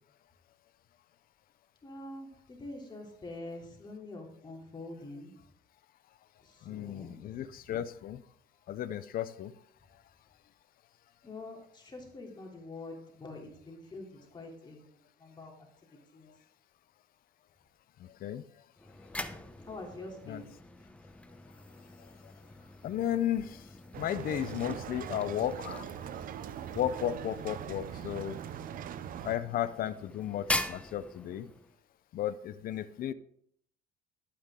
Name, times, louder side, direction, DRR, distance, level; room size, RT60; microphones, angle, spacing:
voice 1, 1.8-5.3 6.4-7.5 11.2-15.7 16.1-16.3 19.6-20.5, left 2 dB, 25° left, 0 dB, 3.0 m, -46 dB
voice 2, 6.6-8.2 8.7-9.5 18.0-18.4 20.3-20.4 22.0-22.3 22.8-23.7 24.0-25.9 26.7-28.4 29.2-31.5 32.1-33.1, left 11 dB, 60° left, 14 dB, 0.7 m, -34 dB
sound 1, 18.8-31.8, left 1 dB, 5° left, 0.8 m, -43 dB
sound 2, 23.9-29.4, right 10 dB, 55° right, 0.6 m, -41 dB
11.5 x 8.7 x 3.7 m, 0.68 s
cardioid pair, 110°, 17 cm